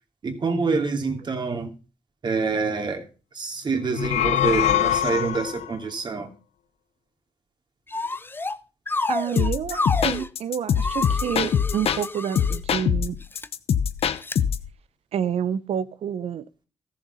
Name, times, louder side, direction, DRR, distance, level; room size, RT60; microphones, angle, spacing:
voice 1, 0.2-1.7 2.2-3.1 3.3-6.3, right 4 dB, 40° right, 2.8 m, -26 dB
sound 1, 3.8-5.7, left 11 dB, 85° left, 0.7 m, -23 dB
sound 2, 7.9-8.6 8.9-10.3 10.8-12.6 13.2-13.5 14.2-14.4, left 3 dB, 20° left, 0.7 m, -29 dB
voice 2, 9.1-13.1 15.1-16.4, right 9 dB, 65° right, 0.9 m, -28 dB
sound 3, 9.4-12.1 12.4-14.7, left 8 dB, 60° left, 1.0 m, -24 dB
14.0 x 7.2 x 5.6 m
cardioid pair, 90°, 11 cm